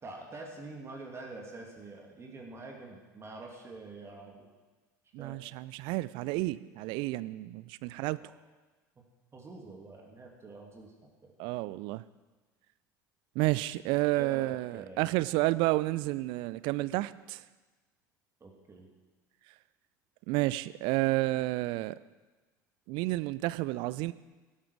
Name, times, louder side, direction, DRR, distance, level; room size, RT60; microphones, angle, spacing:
voice 1, 0.0-4.5 5.2-5.4 8.2-8.3 9.3-10.9 11.2-11.3 14.1-15.1 18.4-18.9, right 3 dB, 25° right, 0 dB, 2.5 m, -46 dB
voice 2, 5.1-8.2 11.4-12.0 13.4-17.4 20.3-22.0 22.9-24.1, right 19 dB, 55° right, 18 dB, 0.5 m, -30 dB
12.5 x 12.5 x 4.7 m, 1.2 s
figure-of-eight pair, 65°, 10 cm